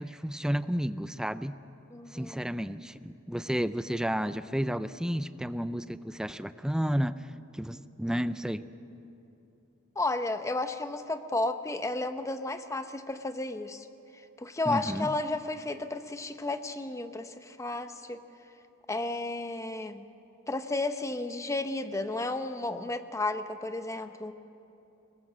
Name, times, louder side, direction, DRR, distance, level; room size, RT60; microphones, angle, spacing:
voice 1, 0.0-1.5 2.1-7.3 7.5-8.6 14.7-15.1, equal, 5° right, 13 dB, 0.4 m, -31 dB
voice 2, 1.9-2.4 10.0-13.9 14.4-18.2 18.9-20.0 20.5-24.3, left 2 dB, 15° left, 9 dB, 0.8 m, -33 dB
23.0 x 20.0 x 7.4 m, 2.9 s
head